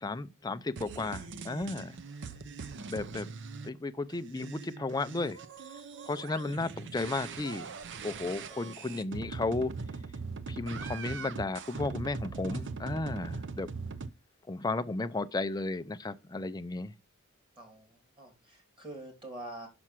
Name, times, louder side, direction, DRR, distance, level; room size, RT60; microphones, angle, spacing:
voice 1, 0.0-2.0 2.9-3.3 3.6-5.4 6.1-9.7 10.5-13.7 14.5-16.9, left 3 dB, 15° left, 0.4 m, -34 dB
sound 1, 0.8-3.7 4.1-14.1, right 4 dB, 55° right, 0.6 m, -41 dB
voice 2, 17.6-19.7, right 1 dB, 20° right, 2.8 m, -45 dB
6.1 x 5.5 x 6.0 m
head